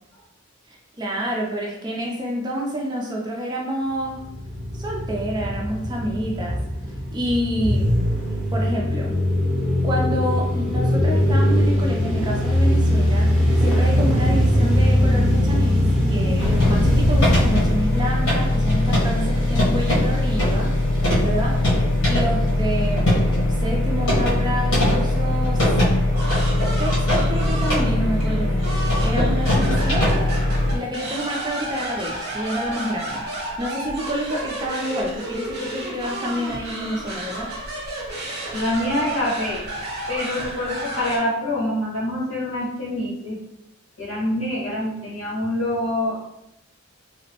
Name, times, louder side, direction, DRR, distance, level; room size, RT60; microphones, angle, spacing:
voice 1, 0.7-4.2 4.7-6.6 7.1-7.9 8.5-9.1 9.8-15.8 16.1-20.7 21.2-21.8 22.0-25.7 26.8-30.3 30.7-37.5, equal, 20° right, -1 dB, 0.4 m, -28 dB
sound 1, 4.0-18.4, equal, 5° left, 0.9 m, -21 dB
sound 2, 16.4-30.8, left 1 dB, 85° left, 1.0 m, -20 dB
sound 3, 26.2-41.2, right 1 dB, 50° right, 0.9 m, -32 dB
voice 2, 38.5-39.7 40.1-43.4 44.0-46.2, left 1 dB, 70° left, -7 dB, 1.3 m, -25 dB
2.9 x 2.0 x 2.8 m, 0.83 s
head